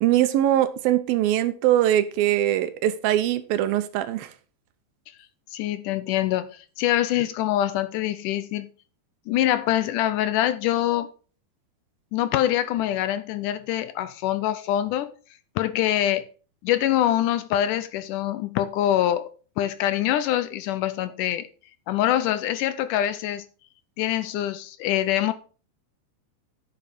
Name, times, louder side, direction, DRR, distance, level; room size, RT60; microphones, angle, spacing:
voice 1, 0.0-4.3, right 12 dB, 75° right, 2.6 m, -22 dB
voice 2, 5.5-8.7 9.3-11.1 12.1-15.1 15.6-16.3 16.6-19.3 19.6-21.5 21.9-23.5 24.0-25.3, left 12 dB, 85° left, 1.8 m, -24 dB
10.0 x 6.9 x 5.3 m
omnidirectional pair, 4.3 m